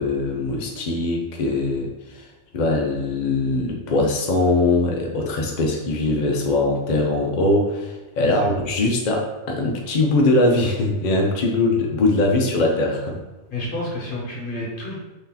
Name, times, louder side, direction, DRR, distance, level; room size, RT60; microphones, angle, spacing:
voice 1, 0.0-2.2 2.5-13.2, left 2 dB, 75° left, 1 dB, 0.4 m, -21 dB
voice 2, 13.5-15.0, left 1 dB, 45° left, -4 dB, 1.2 m, -30 dB
3.0 x 2.7 x 3.8 m, 1.1 s
omnidirectional pair, 1.4 m